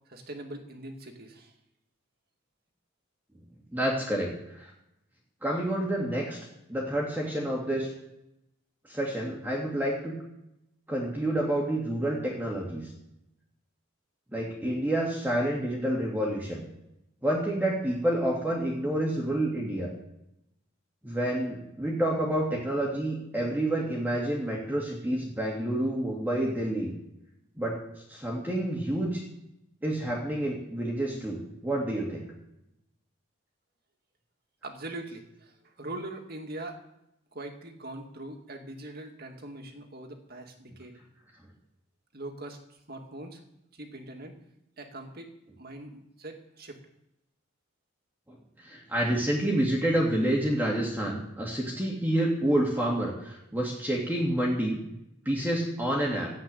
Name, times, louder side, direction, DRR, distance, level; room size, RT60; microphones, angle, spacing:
voice 1, 0.1-1.5 34.6-36.8 37.3-41.0 42.1-43.4 43.7-44.3 44.8-45.3 45.6-46.8, right 2 dB, 45° right, 4 dB, 2.1 m, -42 dB
voice 2, 3.7-4.7 5.4-6.4 6.7-7.9 8.9-10.2 10.9-12.9 14.3-16.7 17.2-19.9 21.0-26.9 27.6-27.8 28.1-29.2 29.8-32.3 48.3-54.8 55.3-56.3, right 1 dB, 10° right, -3 dB, 2.4 m, -28 dB
14.0 x 8.3 x 9.1 m, 0.84 s
head